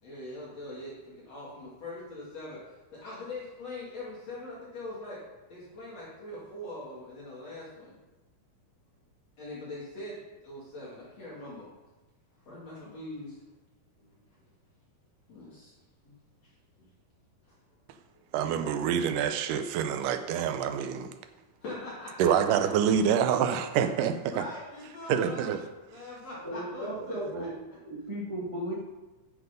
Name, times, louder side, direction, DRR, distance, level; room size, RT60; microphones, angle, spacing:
voice 1, 0.0-2.6 2.9-5.2 5.5-8.0 9.4-11.7 12.4-13.4 14.0-14.1 15.3-15.7 16.0-16.1 16.4-16.5 16.8-16.9 17.4-17.6 21.6-22.7 24.2-25.5 25.9-27.5, left 2 dB, 45° left, -7 dB, 3.3 m, -42 dB
voice 2, 18.3-21.1 22.2-24.4 25.1-25.6, right 8 dB, 75° right, 8 dB, 2.0 m, -26 dB
voice 3, 26.4-27.6 27.8-28.7, right 1 dB, 40° right, -5 dB, 0.4 m, -35 dB
10.0 x 7.2 x 5.2 m, 1.1 s
omnidirectional pair, 4.3 m